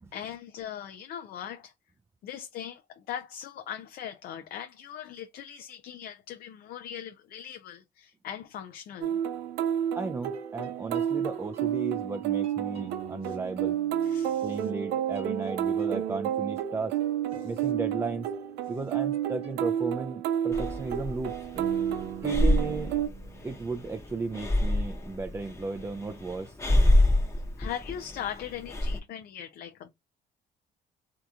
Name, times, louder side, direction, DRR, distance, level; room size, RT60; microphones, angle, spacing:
voice 1, 0.1-1.7 2.2-9.2 13.2-13.4 14.0-14.7 17.4-17.5 27.6-29.9, left 9 dB, 65° left, 0.5 m, -40 dB
sound 1, 9.0-23.1, right 10 dB, 85° right, 0.6 m, -30 dB
sound 2, 9.3-9.9 10.3-14.9 15.2-23.9, right 8 dB, 35° right, 1.1 m, -47 dB
voice 2, 10.0-13.7 14.4-17.0 17.4-18.3 18.7-21.4 22.2-22.9 23.4-26.6, right 3 dB, 15° right, 0.4 m, -35 dB
Breathing, 20.5-29.0, left 1 dB, 15° left, 0.8 m, -27 dB
3.5 x 2.8 x 2.4 m
cardioid pair, 110°, 17 cm